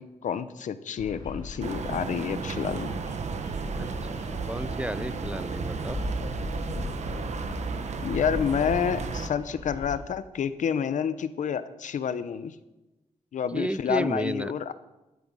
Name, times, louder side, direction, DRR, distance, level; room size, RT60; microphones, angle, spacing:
voice 1, 0.0-3.0 8.0-12.5 13.3-14.7, left 7 dB, 85° left, 13 dB, 0.8 m, -29 dB
Bird vocalization bird call bird song, 1.0-10.0, left 2 dB, 35° left, 4.4 m, -38 dB
sound 1, 1.6-9.3, right 5 dB, 65° right, 1.1 m, -34 dB
voice 2, 3.8-4.2 4.5-6.0 13.5-14.5, right 1 dB, 10° right, 17 dB, 0.4 m, -32 dB
13.5 x 9.3 x 6.2 m, 1.0 s
wide cardioid pair, 90°, 12 cm